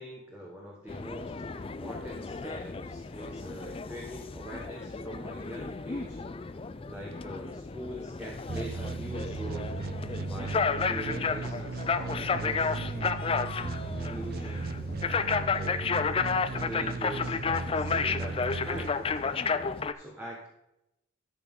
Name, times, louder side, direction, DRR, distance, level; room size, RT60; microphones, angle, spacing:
voice 1, 0.0-6.2 6.9-9.8 10.3-13.2 13.8-14.8 15.1-16.0 16.5-19.0 19.9-20.5, right 1 dB, 10° right, -3 dB, 1.4 m, -43 dB
sound 1, 0.9-19.9, left 5 dB, 25° left, 0.4 m, -32 dB
sound 2, 8.5-19.4, right 4 dB, 45° right, 0.4 m, -36 dB
13.5 x 6.0 x 3.7 m, 0.85 s
head